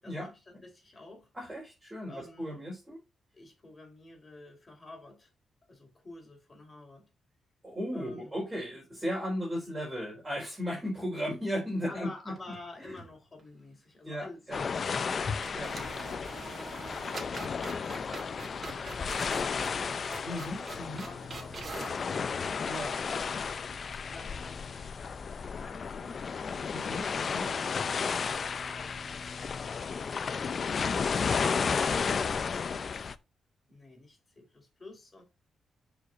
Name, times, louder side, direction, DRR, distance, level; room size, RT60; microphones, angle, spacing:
voice 1, 0.0-1.3 2.0-2.7 3.3-5.3 5.7-7.1 7.9-8.3 11.9-15.5 15.8-22.7 23.0-25.1 25.5-26.3 26.9-30.0 31.3-32.8 33.7-35.2, left 2 dB, 25° left, 4.2 m, -50 dB
voice 2, 1.3-3.0 7.6-12.1 12.8-12.9 14.0-14.6 15.5-15.7 20.2-21.1 22.6-22.9 26.7-27.5, equal, 15° right, 4.6 m, -36 dB
sound 1, 12.3-13.1 13.4-13.5 15.0-15.1 15.4-22.0, right 3 dB, 35° right, 2.2 m, -45 dB
sound 2, 14.5-33.1, left 5 dB, 45° left, 0.5 m, -33 dB
13.0 x 5.1 x 2.6 m
cardioid pair, 130°, 0 cm